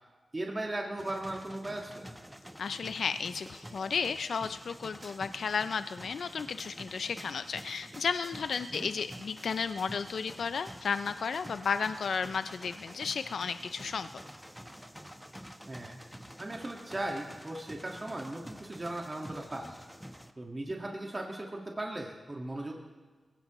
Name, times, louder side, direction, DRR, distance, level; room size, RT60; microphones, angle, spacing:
voice 1, 0.3-2.0 8.7-8.9 15.7-16.0 16.4-19.7 20.4-22.8, right 1 dB, 30° right, 0 dB, 1.7 m, -37 dB
sound 1, 1.0-20.3, equal, ahead, 0.9 m, -48 dB
voice 2, 2.6-14.1, left 6 dB, 80° left, 11 dB, 0.3 m, -33 dB
21.5 x 17.0 x 3.0 m, 1.5 s
cardioid pair, 65°, 0 cm